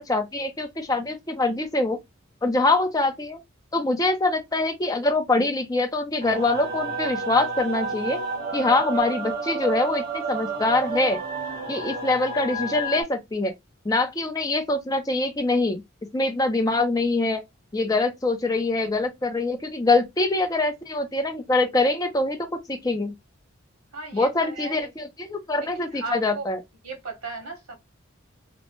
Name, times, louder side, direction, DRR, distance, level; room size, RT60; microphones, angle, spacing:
voice 1, 0.0-2.0 2.4-3.4 3.7-8.2 8.5-11.2 11.7-13.5 13.8-15.8 16.1-17.4 17.7-23.1 24.1-26.6, left 2 dB, 15° left, 0.5 m, -24 dB
sound 1, 6.2-13.0, right 3 dB, 40° right, 1.3 m, -30 dB
voice 2, 23.9-24.9 25.6-26.4 26.8-27.8, right 3 dB, 90° right, 1.4 m, -36 dB
3.0 x 2.1 x 3.1 m
head